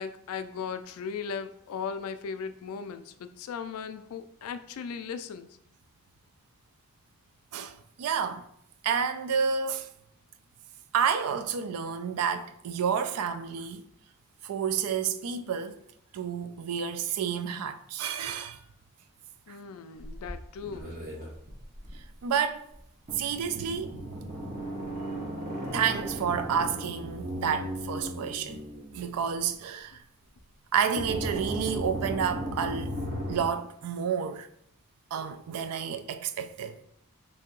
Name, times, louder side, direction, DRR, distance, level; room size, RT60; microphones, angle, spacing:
voice 1, 0.0-5.5 19.5-21.0, left 6 dB, 70° left, 0.3 m, -37 dB
voice 2, 7.5-8.4 8.8-9.9 10.9-13.8 14.4-15.8 16.1-18.6 19.5-19.6 22.2-22.7 23.2-24.0 25.7-28.6 28.9-30.0 30.7-33.0 33.3-34.5 35.1-36.8, right 7 dB, 80° right, 0.3 m, -30 dB
sound 1, 20.0-22.0 22.7-22.8 23.1-29.5 31.0-33.4, equal, 40° right, 0.9 m, -36 dB
2.8 x 2.7 x 3.7 m
head